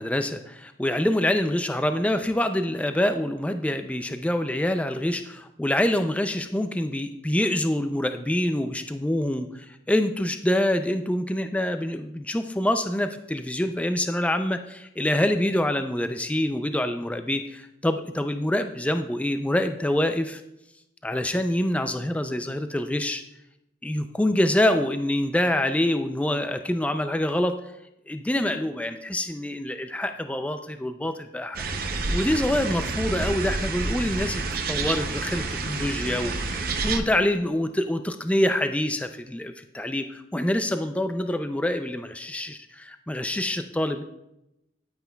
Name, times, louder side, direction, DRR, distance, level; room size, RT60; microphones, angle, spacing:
voice 1, 0.0-20.4 21.0-23.2 23.8-27.6 28.1-31.6 32.1-44.0, left 1 dB, 5° left, 8 dB, 0.4 m, -26 dB
sound 1, 31.5-37.0, right 3 dB, 50° right, 0.7 m, -29 dB
10.5 x 9.2 x 2.3 m, 0.86 s
head